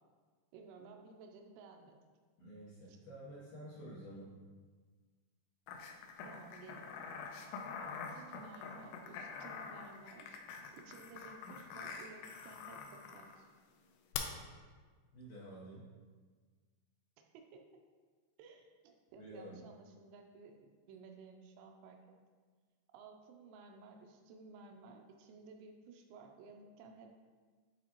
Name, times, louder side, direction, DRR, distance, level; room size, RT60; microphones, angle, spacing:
voice 1, 0.5-2.0 2.9-3.0 6.2-7.0 7.8-10.4 10.7-13.5 17.3-17.6 18.4-22.0 22.9-27.1, right 4 dB, 85° right, 3 dB, 2.4 m, -55 dB
voice 2, 2.4-4.4 15.1-15.9 19.2-19.6, right 1 dB, 70° left, -7 dB, 2.3 m, -50 dB
sound 1, 5.7-13.3 14.1-14.2, left 6 dB, 90° left, 2.4 m, -46 dB
9.7 x 4.1 x 2.9 m, 1.5 s
omnidirectional pair, 5.4 m